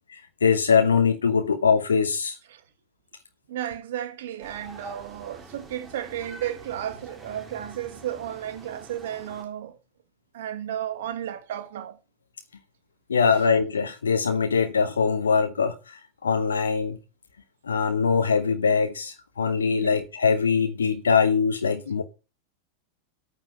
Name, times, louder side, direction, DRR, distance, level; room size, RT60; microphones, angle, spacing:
voice 1, 0.1-2.4 13.1-17.0 17.6-22.0, left 5 dB, 70° left, 1.1 m, -22 dB
voice 2, 3.5-9.8 10.3-12.0 19.8-20.0, right 11 dB, 55° right, 1.4 m, -33 dB
sound 1, 4.4-9.4, right 2 dB, 20° right, 2.7 m, -46 dB
9.1 x 9.0 x 5.6 m
figure-of-eight pair, 90°, 0 cm